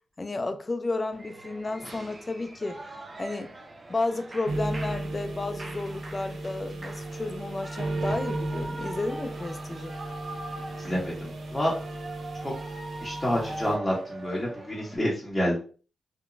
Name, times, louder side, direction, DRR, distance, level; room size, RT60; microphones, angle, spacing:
voice 1, 0.2-2.8 3.2-3.5 3.9-9.9, left 2 dB, 30° left, 0.3 m, -32 dB
Shout / Cheering, 1.1-15.0, right 1 dB, 35° right, 0.5 m, -42 dB
sound 1, 4.5-13.7, right 2 dB, 85° right, 0.5 m, -35 dB
voice 2, 10.8-11.7 12.4-12.5 13.0-15.6, equal, 15° left, 0.9 m, -28 dB
2.9 x 2.2 x 2.5 m
cardioid pair, 75°, 0 cm